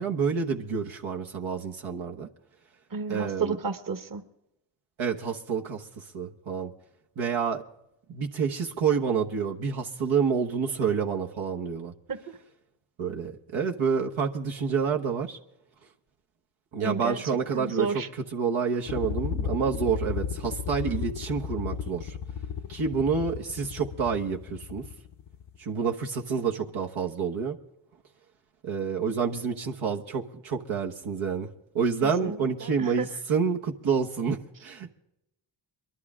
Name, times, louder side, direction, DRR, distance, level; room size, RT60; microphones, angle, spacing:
voice 1, 0.0-2.3 3.1-3.6 5.0-6.7 7.2-7.6 8.1-11.9 13.0-15.4 16.7-18.0 18.3-22.2 22.7-24.9 25.6-27.6 28.6-31.5 31.7-34.9, right 6 dB, 75° right, 0 dB, 1.3 m, -28 dB
voice 2, 2.9-4.2 12.1-12.2 16.8-17.2 17.5-18.1 32.0-33.1, right 5 dB, 40° right, 8 dB, 1.4 m, -31 dB
sound 1, 18.9-25.6, left 7 dB, 70° left, 0.8 m, -34 dB
22.5 x 11.5 x 3.6 m, 0.84 s
supercardioid pair, 40°, 49 cm